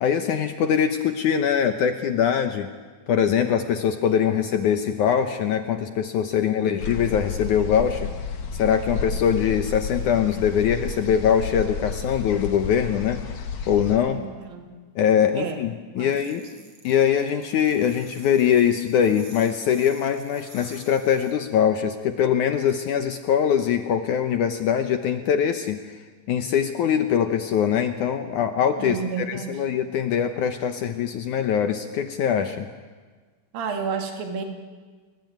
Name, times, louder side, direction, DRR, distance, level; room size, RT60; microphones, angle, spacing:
voice 1, 0.0-2.7 3.1-8.1 8.5-13.2 13.7-14.2 15.0-16.5 16.8-25.8 26.3-32.7, left 8 dB, 65° left, 7 dB, 2.2 m, -22 dB
voice 2, 4.0-4.4 6.3-6.8 14.1-14.7 15.4-15.6 15.9-16.2 16.5-16.7 28.8-29.6 33.5-34.4, right 6 dB, 70° right, 4 dB, 4.0 m, -32 dB
sound 1, 6.8-14.0, left 5 dB, 50° left, 2.8 m, -31 dB
sound 2, 16.1-21.3, right 2 dB, 40° right, 5.8 m, -49 dB
29.5 x 21.0 x 9.3 m, 1.5 s
omnidirectional pair, 4.3 m